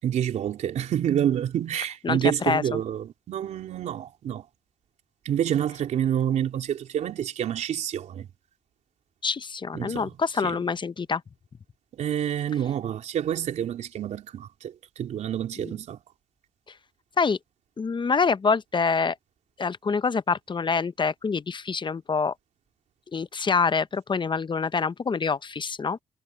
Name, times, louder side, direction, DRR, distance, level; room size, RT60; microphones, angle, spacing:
voice 1, 0.0-4.4 5.2-8.3 9.7-10.1 10.4-10.6 11.9-16.0, right 10 dB, 75° right, 3.6 m, -28 dB
voice 2, 9.2-11.2 15.6-15.7 17.2-17.4 17.8-19.2 19.6-22.3 23.1-26.0, left 5 dB, 40° left, 0.8 m, -26 dB
supercardioid pair, 50°, 12 cm